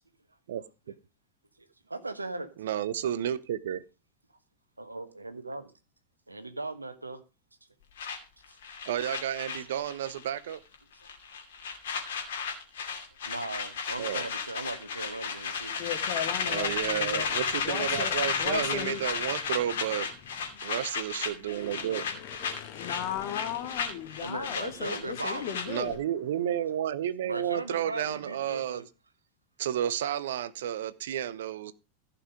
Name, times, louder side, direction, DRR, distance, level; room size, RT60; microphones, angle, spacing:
voice 1, 1.6-2.5 4.8-5.7 6.3-7.2 11.0-11.1 13.2-15.7 24.2-25.5 27.2-28.8, right 2 dB, 80° right, 1.3 m, -38 dB
voice 2, 2.6-3.8 8.9-10.6 14.0-14.3 16.5-20.1 20.6-22.1 25.7-28.9 29.6-31.7, right 10 dB, 60° right, 0.7 m, -31 dB
sound 1, 8.0-10.2 10.5-10.8 11.1-26.0, left 6 dB, 60° left, 2.6 m, -34 dB
voice 3, 15.8-19.4 20.1-20.6 21.6-26.0, left 10 dB, 45° left, 2.0 m, -37 dB
15.0 x 5.9 x 5.0 m
figure-of-eight pair, 90°, 0 cm